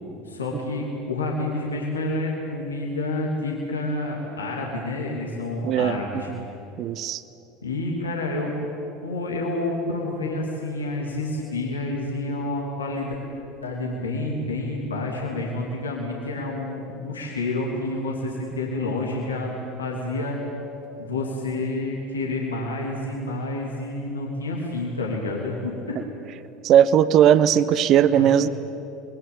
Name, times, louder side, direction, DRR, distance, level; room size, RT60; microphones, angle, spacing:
voice 1, 0.2-6.3 7.6-8.6 9.0-13.1 13.6-19.5 19.8-20.4 21.0-25.7 28.1-28.4, left 2 dB, 90° left, -2 dB, 3.1 m, -29 dB
voice 2, 5.6-6.0 6.3-6.4 6.8-7.2 26.6-28.5, right 9 dB, 50° right, 16 dB, 1.1 m, -18 dB
27.5 x 21.5 x 9.1 m, 3.0 s
hypercardioid pair, 75°, 0 cm